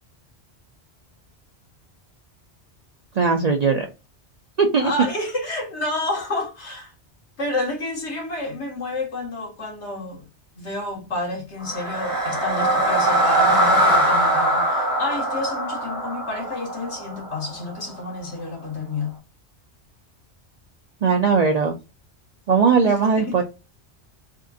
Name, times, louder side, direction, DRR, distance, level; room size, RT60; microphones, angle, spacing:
voice 1, 3.2-3.9 4.6-4.9 21.0-21.7 22.5-23.4, right 5 dB, 50° right, 0.5 m, -19 dB
voice 2, 4.8-6.9 7.4-10.3 10.5-19.2 22.8-23.3, left 2 dB, 80° left, 1.7 m, -30 dB
sound 1, 11.6-17.8, right 1 dB, 20° right, 1.1 m, -21 dB
3.6 x 2.4 x 2.6 m
omnidirectional pair, 1.1 m